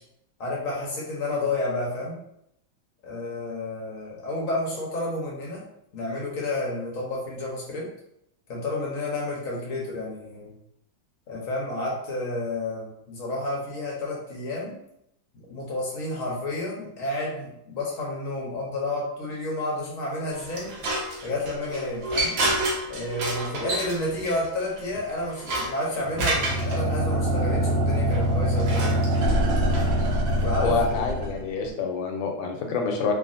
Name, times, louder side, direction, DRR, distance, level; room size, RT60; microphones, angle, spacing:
voice 1, 0.4-2.2 3.0-5.6 5.9-7.9 8.5-10.6 11.3-14.7 15.5-20.7 21.2-22.4 22.9-29.0 30.4-31.1, left 2 dB, 60° left, -3 dB, 0.9 m, -30 dB
sound 1, 20.3-26.8 28.1-30.4, right 1 dB, 65° right, 0.8 m, -30 dB
sound 2, 26.1-31.7, right 1 dB, 90° right, 1.5 m, -24 dB
voice 2, 30.6-33.1, left 5 dB, 80° left, 2 dB, 1.3 m, -27 dB
3.2 x 2.4 x 2.5 m, 0.77 s
omnidirectional pair, 2.1 m